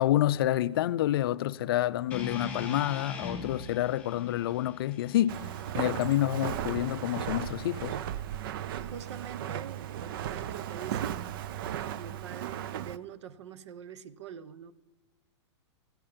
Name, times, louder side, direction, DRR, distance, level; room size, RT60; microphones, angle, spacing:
voice 1, 0.0-5.4 5.7-8.0, left 13 dB, 50° left, 0.5 m, -28 dB
sound 1, 2.1-6.3, left 4 dB, 10° left, 3.6 m, -41 dB
Walk footsteps, 5.3-13.0, right 11 dB, 50° right, 0.5 m, -36 dB
voice 2, 8.8-11.2 11.7-14.7, right 8 dB, 70° right, 0.9 m, -44 dB
15.5 x 12.5 x 5.1 m
hypercardioid pair, 160°, 15 cm